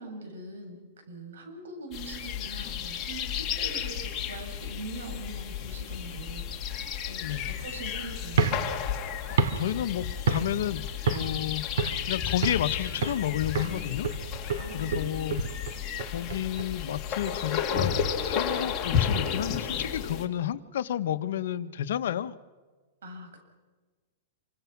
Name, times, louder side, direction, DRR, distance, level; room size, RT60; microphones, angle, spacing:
voice 1, 0.0-6.7 7.0-8.5 14.6-15.4 23.0-23.4, right 2 dB, 90° right, 5 dB, 8.0 m, -42 dB
sound 1, 1.9-20.2, left 8 dB, 20° left, 2.9 m, -33 dB
sound 2, 8.3-10.7 11.1-11.4 11.8-12.7 13.0-13.3 13.6-16.7, right 5 dB, 70° right, 2.5 m, -30 dB
voice 2, 9.3-11.6 12.0-14.1 14.7-15.4 16.1-22.3, left 11 dB, 70° left, 11 dB, 1.2 m, -31 dB
27.5 x 25.5 x 6.1 m, 1.3 s
supercardioid pair, 160°, 0 cm